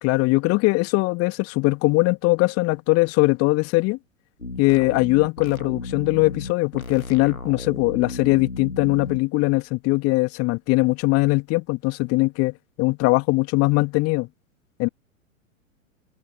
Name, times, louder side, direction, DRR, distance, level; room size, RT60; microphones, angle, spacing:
voice 1, 0.0-4.0 4.6-14.3 14.8-14.9, left 24 dB, 35° left, 2.5 m, -21 dB
sound 1, 4.4-9.2, left 3 dB, 90° left, 2.1 m, -34 dB
figure-of-eight pair, 95°, 41 cm